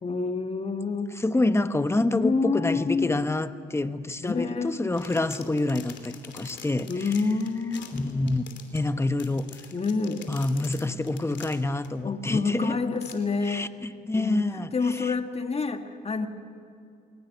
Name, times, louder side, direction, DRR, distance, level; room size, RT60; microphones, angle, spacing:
voice 1, 0.0-1.1 2.1-3.1 4.2-4.7 6.9-8.3 9.7-10.3 12.0-13.7 14.1-14.4 14.7-16.3, left 4 dB, 30° left, 6 dB, 1.6 m, -28 dB
voice 2, 1.2-7.1 7.9-8.4 8.7-9.4 10.3-12.8 13.4-15.1, left 2 dB, 15° left, 11 dB, 1.1 m, -27 dB
sound 1, 4.7-11.9 12.5-12.6 13.0-13.1, left 7 dB, 65° left, 2.9 m, -46 dB
21.5 x 18.5 x 9.4 m, 2.4 s
cardioid pair, 90°, 20 cm